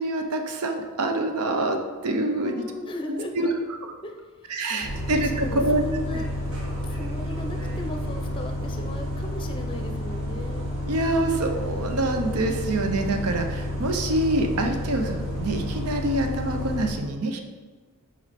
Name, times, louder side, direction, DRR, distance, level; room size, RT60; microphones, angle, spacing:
voice 1, 0.0-1.8 2.0-2.6 3.1-3.5 4.5-5.9 10.9-17.4, right 1 dB, 90° right, 4 dB, 0.7 m, -26 dB
voice 2, 2.4-3.5 4.0-4.1 4.5-4.9 5.2-6.3 6.9-10.7, left 1 dB, 25° left, 4 dB, 0.6 m, -37 dB
Bus, 4.8-16.9, equal, 70° right, 1.6 m, -30 dB
5.9 x 4.3 x 4.2 m, 1.4 s
head